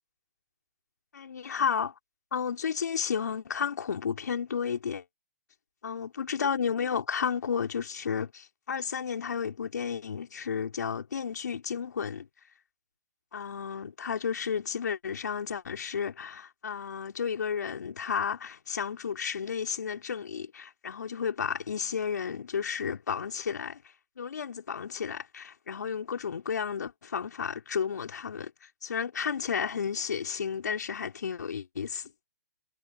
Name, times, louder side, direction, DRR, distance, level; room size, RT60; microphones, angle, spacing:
voice 1, 1.1-1.9 2.3-5.0 5.8-12.3 13.3-23.8 24.2-28.5 28.8-32.1, left 7 dB, 70° left, 4.4 m, -32 dB
hypercardioid pair, 135°, 10 cm